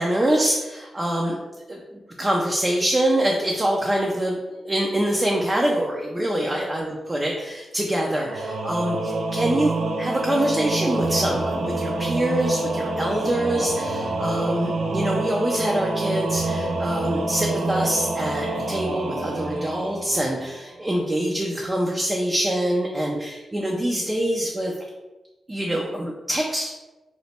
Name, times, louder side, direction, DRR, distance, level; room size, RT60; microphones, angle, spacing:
voice 1, 0.0-1.4 1.7-1.8 2.2-4.4 4.6-24.7 25.5-26.7, right 1 dB, 20° right, -1 dB, 0.3 m, -24 dB
Singing / Musical instrument, 8.2-20.7, right 2 dB, 85° right, 0.5 m, -27 dB
3.0 x 2.1 x 4.1 m, 1.1 s
wide cardioid pair, 130°, 0 cm